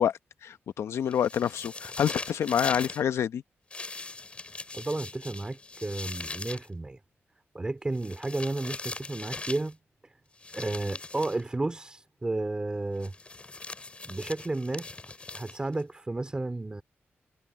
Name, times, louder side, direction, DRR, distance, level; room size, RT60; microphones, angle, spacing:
voice 1, 0.0-3.4, left 9 dB, 85° left, 0.9 m, -27 dB
sound 1, 1.1-3.0 3.7-6.7 7.9-9.7 10.4-11.4 13.0-15.8, left 3 dB, 25° left, 3.2 m, -40 dB
voice 2, 4.7-7.0 7.5-9.8 10.0-10.1 10.5-13.1 14.1-14.9 15.3-16.8, right 2 dB, 20° right, 3.5 m, -32 dB
wide cardioid pair, 115°, 4 cm